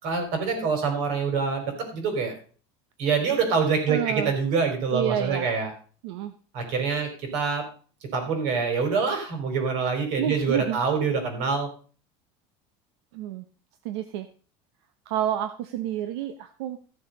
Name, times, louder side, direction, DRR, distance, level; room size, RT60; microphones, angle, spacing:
voice 1, 0.0-2.4 3.0-5.7 6.5-7.6 8.1-11.7, right 5 dB, 60° right, 5 dB, 4.6 m, -25 dB
voice 2, 3.9-4.3 4.9-5.5 6.0-6.3 10.2-10.8 13.1-13.4 13.8-14.3 15.1-16.8, right 11 dB, 85° right, 9 dB, 1.0 m, -29 dB
15.0 x 7.0 x 5.3 m, 0.40 s
cardioid pair, 170°, 14 cm